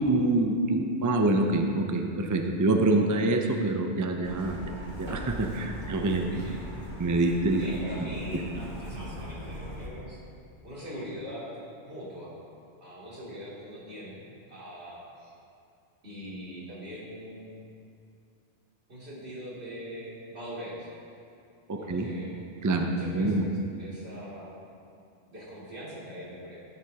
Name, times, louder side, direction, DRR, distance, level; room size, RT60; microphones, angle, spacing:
voice 1, 0.0-4.7 5.0-6.3 7.0-7.6 21.7-22.1 22.6-23.5, right 2 dB, 25° right, 4 dB, 0.4 m, -26 dB
Truck, 4.2-9.9, equal, 45° right, 1.7 m, -40 dB
voice 2, 7.6-10.2 10.6-11.5 11.8-12.3 12.8-15.3 16.0-17.7 18.9-20.9 21.8-22.3 22.7-24.5 25.3-26.6, equal, 65° right, -8 dB, 3.0 m, -41 dB
14.0 x 8.2 x 2.9 m, 2.5 s
omnidirectional pair, 1.2 m